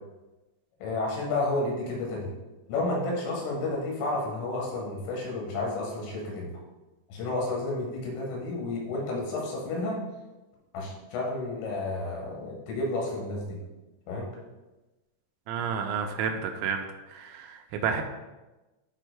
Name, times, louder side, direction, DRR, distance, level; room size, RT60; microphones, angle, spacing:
voice 1, 0.8-2.3 2.7-6.5 7.1-10.0 10.7-13.6 14.1-14.3, left 2 dB, 75° left, -2 dB, 3.9 m, -31 dB
voice 2, 15.5-16.8 17.1-18.0, right 6 dB, 85° right, 4 dB, 3.3 m, -30 dB
12.0 x 4.6 x 2.2 m, 1.1 s
omnidirectional pair, 6.0 m